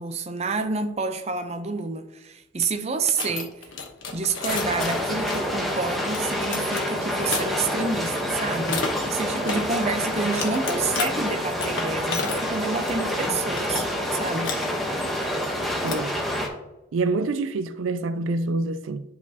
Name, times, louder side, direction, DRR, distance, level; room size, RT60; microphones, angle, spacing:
voice 1, 0.0-3.7 4.1-13.8 14.1-14.6, right 4 dB, 35° right, 0.6 m, -29 dB
sound 1, 3.2-7.4 8.6-8.9 9.5-9.6 10.2-11.1 11.6-13.9 14.2-14.7 15.6-16.2, left 4 dB, 80° left, 1.1 m, -32 dB
sound 2, 4.5-16.5, equal, ahead, 1.0 m, -27 dB
voice 2, 15.8-16.2 16.9-19.0, right 3 dB, 85° right, 0.4 m, -26 dB
10.5 x 4.2 x 2.8 m
head